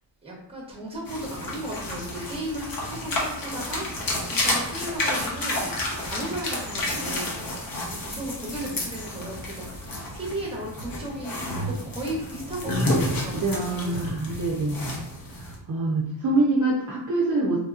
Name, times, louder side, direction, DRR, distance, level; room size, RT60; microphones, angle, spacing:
voice 1, 0.2-5.7 6.0-9.7 10.1-14.6, right 1 dB, 10° right, -3 dB, 0.9 m, -35 dB
sound 1, 1.0-15.6, left 1 dB, 45° left, 0.9 m, -30 dB
voice 2, 13.3-15.0 15.4-17.6, right 2 dB, 40° right, -4 dB, 0.6 m, -25 dB
3.2 x 2.8 x 2.4 m, 0.75 s
cardioid pair, 130°, 48 cm